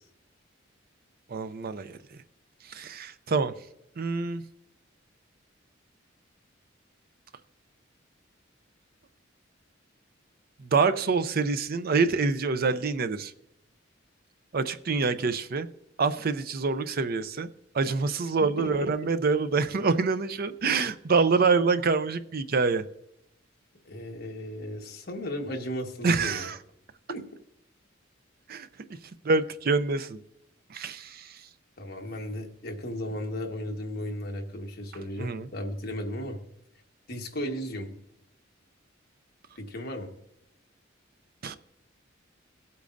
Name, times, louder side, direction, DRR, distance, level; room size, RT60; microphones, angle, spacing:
voice 1, 1.3-2.2 2.6-3.5 4.0-4.4 10.6-13.3 14.5-15.7 16.0-17.5 17.7-22.8 26.0-26.6 28.5-28.7 29.2-30.2 30.7-31.4 35.2-35.5 41.4-41.6, right 4 dB, 50° right, 12 dB, 0.5 m, -26 dB
voice 2, 18.6-18.9 23.8-26.5 27.1-27.2 31.8-36.4 37.1-37.9 39.6-40.1, equal, 50° left, 2 dB, 1.3 m, -35 dB
18.0 x 8.4 x 2.6 m, 0.79 s
head